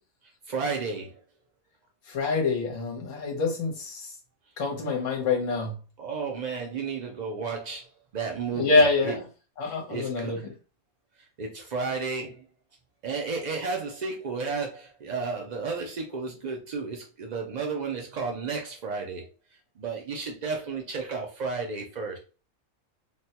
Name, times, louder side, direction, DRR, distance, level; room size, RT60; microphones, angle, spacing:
voice 1, 0.5-1.2 6.0-9.2 9.6-10.5 11.4-12.5 13.0-19.3 19.8-22.2, right 4 dB, 75° right, 0.4 m, -33 dB
voice 2, 2.1-4.1 4.6-5.7 8.5-9.2 9.6-10.4, left 3 dB, 65° left, 1.2 m, -25 dB
3.4 x 2.1 x 2.8 m
omnidirectional pair, 1.4 m